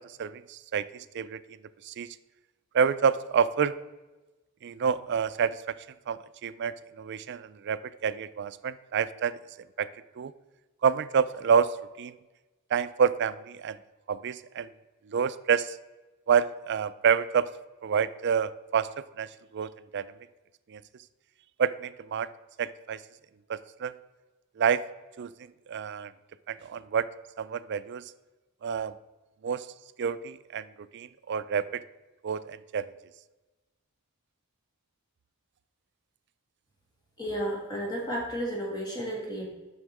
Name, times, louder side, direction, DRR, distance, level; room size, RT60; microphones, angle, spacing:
voice 1, 0.0-2.1 2.7-3.7 4.6-5.8 6.1-9.4 9.8-9.9 10.2-10.3 10.8-12.2 12.7-13.8 14.1-14.7 15.1-15.8 16.3-17.5 17.8-18.9 19.2-20.1 20.7-20.8 21.6-22.3 22.6-23.0 23.5-23.9 24.6-24.8 25.2-26.1 26.5-27.1 27.4-28.1 28.6-28.9 29.4-29.7 30.0-31.8 32.2-32.9, right 7 dB, 50° right, 15 dB, 0.4 m, -28 dB
voice 2, 37.2-39.5, equal, 20° left, -3 dB, 2.5 m, -32 dB
7.8 x 6.1 x 4.7 m, 1.1 s
head